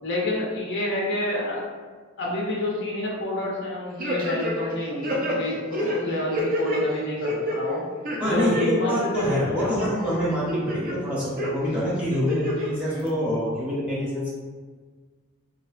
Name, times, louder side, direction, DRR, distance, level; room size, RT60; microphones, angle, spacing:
voice 1, 0.0-1.6 2.2-7.8 8.2-9.1 9.8-9.9 12.9-13.0, left 1 dB, 55° left, -3 dB, 0.5 m, -28 dB
sound 1, 4.0-4.7 5.0-6.8 7.2-7.6 8.0-8.6 9.0-9.9 10.3-10.9 11.4-11.5 12.1-12.7 13.1-13.2, left 1 dB, 40° right, 0.5 m, -28 dB
voice 2, 8.2-14.3, equal, 5° right, -9 dB, 0.7 m, -26 dB
2.7 x 2.1 x 2.4 m, 1.5 s
head